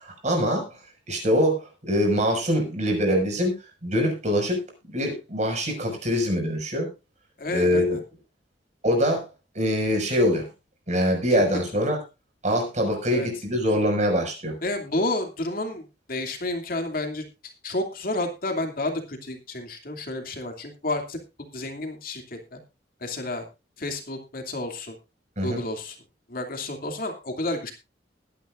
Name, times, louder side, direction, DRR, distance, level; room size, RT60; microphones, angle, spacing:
voice 1, 0.0-0.7 1.1-3.5 3.8-4.6 4.9-6.9 7.5-8.0 8.8-9.2 9.5-10.5 10.9-12.0 12.4-14.5 25.4-25.6, equal, 40° right, 2 dB, 6.1 m, -23 dB
voice 2, 7.4-8.0 13.1-13.3 14.6-21.2 21.5-22.6 23.0-23.5 23.8-24.9 25.4-26.0 26.3-27.7, left 2 dB, 55° left, 4 dB, 2.7 m, -30 dB
21.0 x 10.5 x 2.6 m, 0.28 s
head